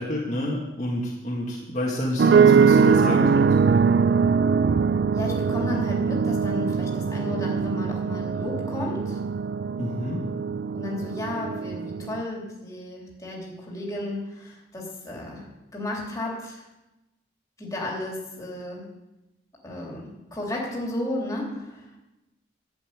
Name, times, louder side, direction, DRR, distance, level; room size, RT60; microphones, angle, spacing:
voice 1, 0.0-3.5 9.8-10.2, left 1 dB, 35° left, -5 dB, 2.0 m, -28 dB
sound 1, 2.2-12.2, right 6 dB, 55° right, 0.3 m, -22 dB
voice 2, 5.1-9.2 10.7-15.4 15.7-16.6 17.6-18.8 19.6-21.9, left 1 dB, 15° left, -3 dB, 3.3 m, -33 dB
11.5 x 7.2 x 9.0 m, 0.98 s
head